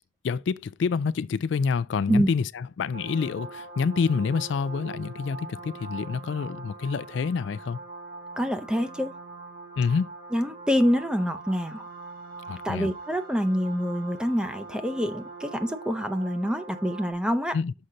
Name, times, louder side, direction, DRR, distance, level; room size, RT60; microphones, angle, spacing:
voice 1, 0.2-7.8 9.8-10.1 12.5-12.9 17.5-17.7, left 5 dB, 70° left, 0.3 m, -27 dB
sound 1, 2.9-17.1, right 3 dB, 50° right, 4.7 m, -42 dB
voice 2, 8.4-9.1 10.3-11.9 12.6-17.6, equal, 5° right, 0.6 m, -26 dB
6.5 x 5.6 x 3.7 m
head